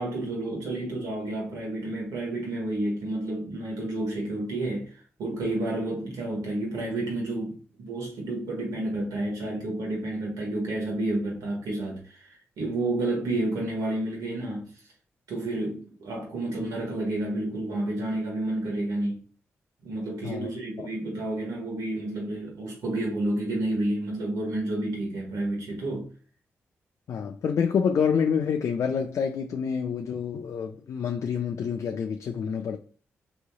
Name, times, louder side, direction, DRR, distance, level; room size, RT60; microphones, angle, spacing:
voice 1, 0.0-14.7 15.3-19.2 19.8-26.1, right 1 dB, 85° right, 1.4 m, -30 dB
voice 2, 27.1-32.8, left 6 dB, 65° left, 0.4 m, -27 dB
3.8 x 3.1 x 2.3 m
supercardioid pair, 45°, 6 cm